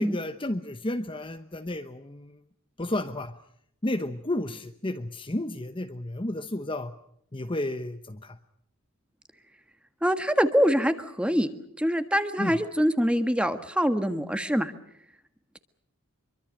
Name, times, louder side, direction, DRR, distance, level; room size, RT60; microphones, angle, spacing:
voice 1, 0.0-2.4 2.8-3.3 3.8-6.9 7.3-8.4 12.4-12.6, left 1 dB, 20° left, 8 dB, 1.0 m, -32 dB
voice 2, 10.0-11.5 11.8-14.7, equal, 5° right, 9 dB, 1.6 m, -24 dB
25.5 x 24.0 x 6.5 m, 0.71 s
head